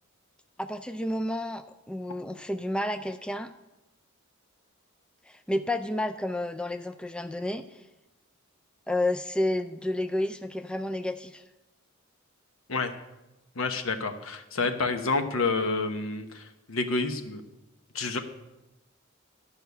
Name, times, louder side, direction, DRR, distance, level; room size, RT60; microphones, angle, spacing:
voice 1, 0.6-3.5 5.3-7.7 8.9-11.4, left 1 dB, 5° left, 8 dB, 0.4 m, -30 dB
voice 2, 13.5-17.4 17.9-18.2, left 3 dB, 70° left, 7 dB, 1.1 m, -29 dB
11.5 x 5.6 x 8.1 m, 0.98 s
head